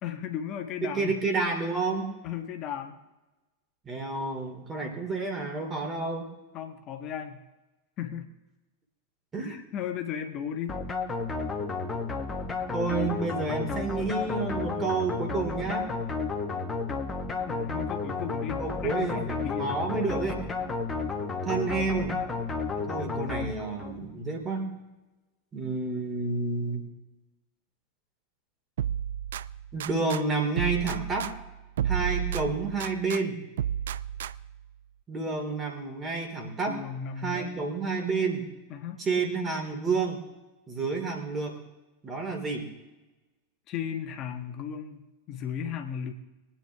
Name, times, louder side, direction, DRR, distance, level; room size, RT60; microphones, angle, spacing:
voice 1, 0.0-1.3 2.2-3.0 6.5-7.4 8.0-8.3 9.5-10.8 17.5-19.8 36.7-37.6 38.7-39.0 43.7-46.1, left 8 dB, 35° left, 5 dB, 1.5 m, -36 dB
voice 2, 0.8-2.1 3.8-6.3 9.3-9.6 12.7-15.9 18.6-20.4 21.4-22.2 22.8-24.7 25.5-26.9 29.7-31.3 31.8-33.4 35.1-36.8 37.2-38.5 39.0-40.2 40.7-41.6 42.0-42.7, right 3 dB, 20° right, 3 dB, 3.0 m, -30 dB
sound 1, 10.7-24.0, left 4 dB, 15° left, 1.5 m, -32 dB
sound 2, 28.8-30.2 30.6-33.2 33.6-34.6, right 10 dB, 60° right, 0.3 m, -32 dB
23.0 x 9.0 x 3.5 m, 1.1 s
figure-of-eight pair, 90°, 0 cm